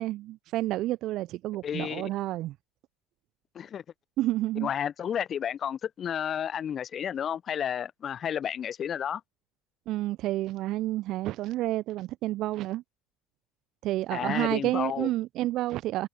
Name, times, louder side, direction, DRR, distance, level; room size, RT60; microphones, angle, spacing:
voice 1, 0.0-2.5 4.2-4.7 9.9-12.8 13.8-16.1, right 16 dB, 55° right, 0.6 m, -30 dB
voice 2, 1.6-2.1 3.5-3.8 4.6-9.2 14.1-15.1, left 9 dB, 40° left, 0.7 m, -31 dB
figure-of-eight pair, 65°, 0 cm